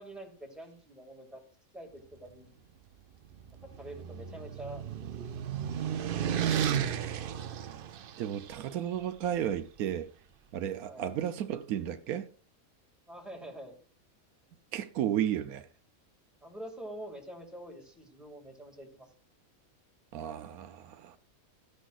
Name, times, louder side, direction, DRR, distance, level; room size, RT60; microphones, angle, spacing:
voice 1, 0.0-1.4 1.7-2.7 3.8-5.3 10.9-11.1 13.1-13.8 16.4-19.1, right 1 dB, ahead, 2.1 m, -46 dB
sound 1, 3.3-8.5, right 9 dB, 65° right, 0.5 m, -33 dB
voice 2, 8.2-10.1 10.5-12.3 14.7-15.6 20.1-21.2, right 10 dB, 85° right, 1.1 m, -33 dB
14.5 x 10.0 x 2.4 m
omnidirectional pair, 1.5 m